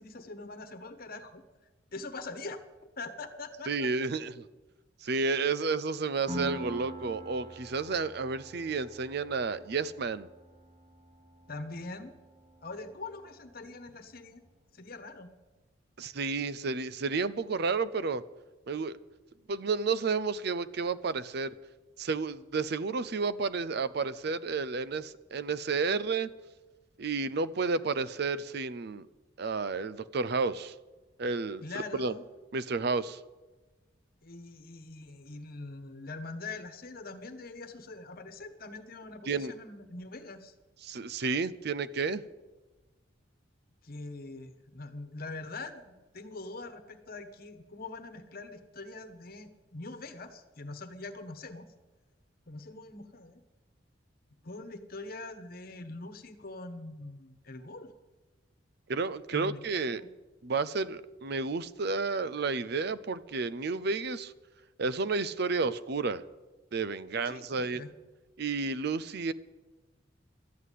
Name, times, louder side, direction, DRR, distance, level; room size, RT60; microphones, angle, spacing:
voice 1, 0.0-1.4 1.9-2.6 3.0-3.9 11.5-12.1 12.6-14.4 14.7-15.3 31.6-32.2 34.2-40.5 43.8-51.7 52.5-53.4 54.4-57.9 59.3-60.1 67.2-67.9, left 3 dB, 50° left, 1.2 m, -43 dB
voice 2, 3.7-4.5 5.0-10.3 16.0-18.2 18.7-19.0 19.5-21.5 22.0-26.3 27.0-29.1 29.4-30.7 31.2-31.6 32.0-32.1 32.5-33.2 39.3-39.5 40.8-42.2 58.9-60.0 60.4-64.3 64.8-66.2 66.7-67.8 68.4-69.3, right 4 dB, 55° right, 0.5 m, -31 dB
Piano, 6.3-13.7, right 1 dB, 40° right, 1.2 m, -44 dB
13.0 x 9.4 x 8.3 m
head